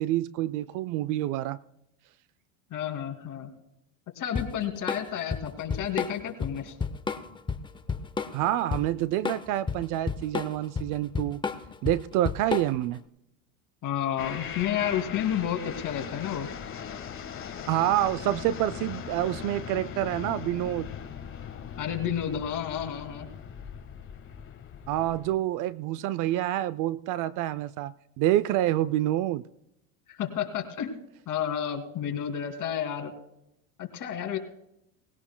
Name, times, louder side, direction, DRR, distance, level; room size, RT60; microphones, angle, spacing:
voice 1, 0.0-1.6 8.3-11.4 11.8-13.0 17.7-20.9 24.9-29.4, right 13 dB, 45° right, 17 dB, 0.5 m, -27 dB
voice 2, 2.7-3.5 4.2-6.7 13.8-16.5 21.8-23.3 30.1-30.9 31.3-33.1 33.8-34.4, left 9 dB, 45° left, 4 dB, 2.6 m, -31 dB
Drum kit / Drum, 4.4-13.0, left 5 dB, 10° left, 0.6 m, -32 dB
sound 1, 14.2-25.4, left 8 dB, 30° left, 1.4 m, -40 dB
20.0 x 17.0 x 2.2 m, 0.81 s
supercardioid pair, 105°, 44 cm